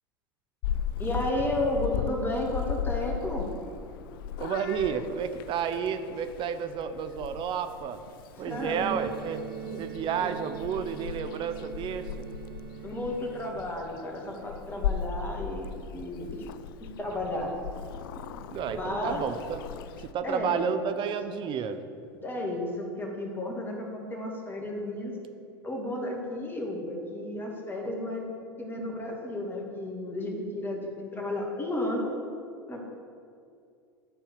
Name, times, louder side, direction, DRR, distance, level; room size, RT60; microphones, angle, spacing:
Purr / Meow, 0.6-20.1, left 8 dB, 70° left, 0.4 m, -37 dB
voice 1, 1.0-3.5 8.5-9.0 9.6-9.8 10.2-10.3 12.8-16.4 16.8-17.5 18.1-18.2 18.7-19.2 20.2-20.8 22.2-25.1 25.6-28.3 28.6-32.1 32.7-32.9, left 1 dB, 15° left, -1 dB, 2.4 m, -33 dB
voice 2, 4.4-8.0 8.4-9.4 9.8-12.3 18.5-19.6 20.0-21.8, right 7 dB, 45° right, 9 dB, 0.7 m, -31 dB
sound 1, 8.5-13.5, right 11 dB, 70° right, 1.0 m, -41 dB
12.5 x 4.5 x 6.7 m, 2.4 s
hypercardioid pair, 90°, 12 cm